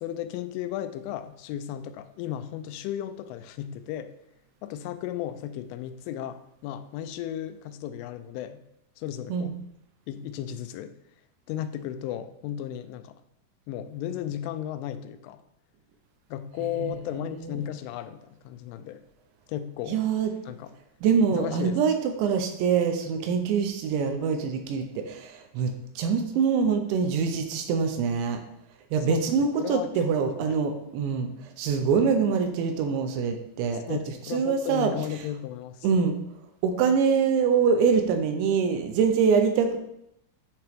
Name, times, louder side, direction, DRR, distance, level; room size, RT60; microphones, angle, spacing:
voice 1, 0.0-4.1 4.6-8.6 9.0-9.6 10.1-10.9 11.5-13.2 13.7-15.4 16.3-19.0 19.5-20.0 20.5-20.7 21.3-21.8 29.1-29.3 29.6-29.9 30.2-30.6 33.9-35.9, left 11 dB, 90° left, 11 dB, 3.1 m, -35 dB
voice 2, 16.6-17.7 19.9-20.3 21.0-28.4 28.9-34.0 34.2-35.2 35.8-36.2 36.6-39.8, right 6 dB, 80° right, 6 dB, 2.9 m, -25 dB
10.5 x 5.6 x 3.5 m, 0.80 s
omnidirectional pair, 5.5 m